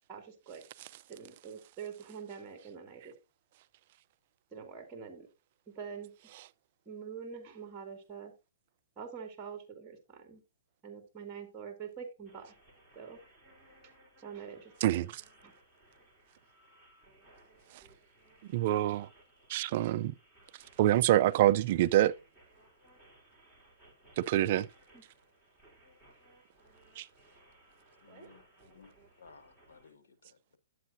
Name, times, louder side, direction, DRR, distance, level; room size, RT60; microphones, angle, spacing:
voice 1, 0.1-0.6 1.1-3.1 4.5-5.3 5.7-6.1 6.9-8.3 9.0-10.4 10.8-12.5 12.9-13.2 14.2-15.0 15.4-15.5 28.1-28.3, right 6 dB, 15° right, 2.5 m, -45 dB
sound 1, 12.2-29.9, right 1 dB, 5° left, 4.0 m, -62 dB
voice 2, 14.8-15.2 18.5-19.1 19.5-20.1 20.8-22.1 24.2-24.7 27.0-27.1, right 14 dB, 40° right, 0.5 m, -26 dB
voice 3, 28.0-30.6, left 4 dB, 80° left, 2.0 m, -59 dB
11.0 x 8.3 x 2.7 m
hypercardioid pair, 155°, 0 cm